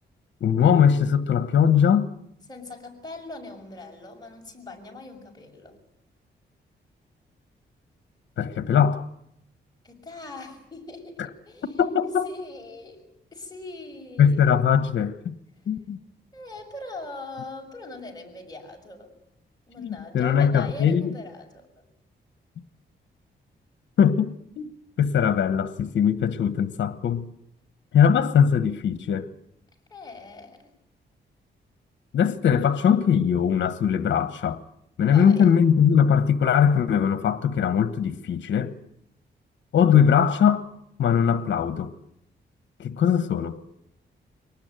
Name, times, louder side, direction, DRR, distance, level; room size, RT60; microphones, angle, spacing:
voice 1, 0.4-2.1 8.4-9.0 11.8-12.3 14.2-15.3 15.7-16.0 19.8-21.1 24.0-24.7 25.0-27.2 27.9-29.3 32.1-34.6 35.0-38.7 39.7-40.7 41.0-41.9 42.8-43.6, left 8 dB, 75° left, 1.2 m, -21 dB
voice 2, 2.5-5.8 9.8-11.7 12.0-13.0 13.3-14.4 16.3-19.1 19.7-21.8 29.9-30.7 35.0-35.5, left 2 dB, 20° left, 6.7 m, -41 dB
23.5 x 19.0 x 9.2 m
cardioid pair, 95°, 19 cm